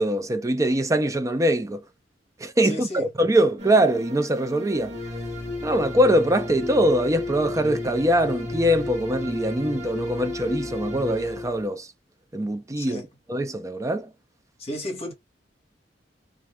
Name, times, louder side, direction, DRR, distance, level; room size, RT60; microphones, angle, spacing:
voice 1, 0.0-1.8 2.4-5.0 5.6-11.9 12.3-13.0 13.3-14.1, right 1 dB, 20° right, 0.4 m, -23 dB
voice 2, 2.6-3.1 12.8-13.1 14.6-15.1, left 1 dB, 35° left, 1.1 m, -33 dB
sound 1, 3.6-11.7, left 2 dB, 40° right, 1.0 m, -33 dB
2.5 x 2.3 x 2.9 m
head